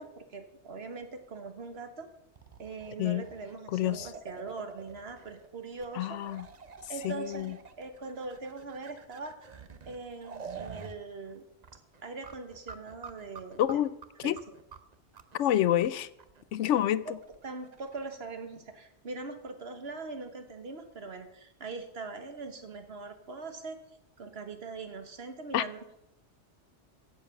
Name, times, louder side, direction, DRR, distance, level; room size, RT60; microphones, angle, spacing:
voice 1, 0.0-2.1 2.6-6.2 6.9-9.4 9.8-11.4 12.0-13.8 14.2-14.6 15.5-15.6 16.6-16.7 17.0-17.1 17.4-23.8 24.2-26.0, right 4 dB, 60° right, 1.6 m, -42 dB
sound 1, 2.4-5.5 5.8-5.9 6.2-11.0 11.2-11.4 11.6-18.1, right 5 dB, 40° right, 0.8 m, -47 dB
voice 2, 3.7-4.1 6.0-6.5 7.0-7.5 13.6-13.9 14.2-14.4 15.3-16.1 16.5-17.0 25.5-25.6, left 12 dB, 85° left, 0.9 m, -27 dB
15.0 x 7.8 x 5.8 m
omnidirectional pair, 1.2 m